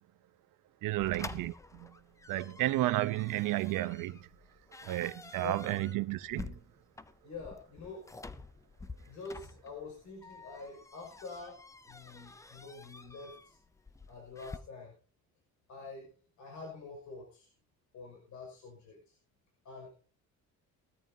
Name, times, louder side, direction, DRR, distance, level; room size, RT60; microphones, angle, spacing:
voice 1, 0.8-1.9 2.3-4.3 4.8-6.6, right 16 dB, 80° right, 0.9 m, -32 dB
sound 1, 1.0-14.6, left 3 dB, 10° left, 0.6 m, -49 dB
voice 2, 7.2-8.1 9.1-13.6 14.1-14.9 15.7-16.1 16.4-17.5 17.9-19.2 19.6-20.0, left 4 dB, 60° left, 5.7 m, -46 dB
20.0 x 13.5 x 2.8 m
cardioid pair, 140°, 32 cm